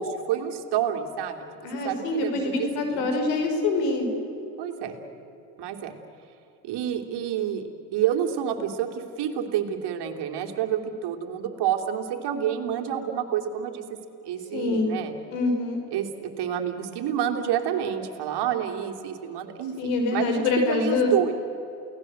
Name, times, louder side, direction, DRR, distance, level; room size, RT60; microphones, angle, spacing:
voice 1, 0.0-3.1 4.6-4.9 5.6-5.9 6.6-7.6 7.9-13.8 14.2-15.1 15.9-21.3, right 9 dB, 60° right, 4 dB, 3.1 m, -29 dB
voice 2, 1.6-4.1 14.5-14.9 15.3-15.8 19.8-21.1, left 3 dB, 75° left, 4 dB, 5.5 m, -25 dB
29.0 x 18.0 x 7.9 m, 3.0 s
supercardioid pair, 90°, 46 cm